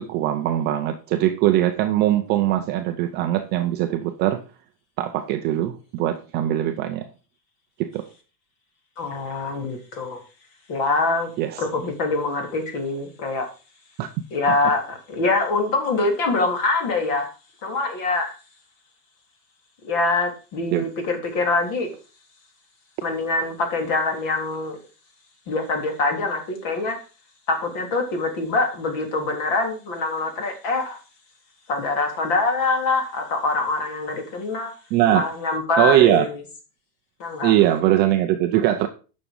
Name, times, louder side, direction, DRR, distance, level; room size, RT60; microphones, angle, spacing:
voice 1, 0.0-4.4 5.0-7.1 7.8-8.0 11.4-11.6 14.0-14.1 20.7-20.8 34.9-35.2 35.8-36.3 37.4-38.9, right 13 dB, 25° right, 5 dB, 0.4 m, -21 dB
voice 2, 9.0-10.2 10.7-11.3 11.6-13.5 14.3-17.3 17.6-18.3 19.8-21.9 23.0-24.8 25.5-27.0 27.5-31.0 31.7-34.7 35.1-36.4 37.2-37.5, left 3 dB, 45° left, 4 dB, 3.4 m, -24 dB
9.9 x 6.3 x 5.3 m, 0.34 s
supercardioid pair, 155°, 47 cm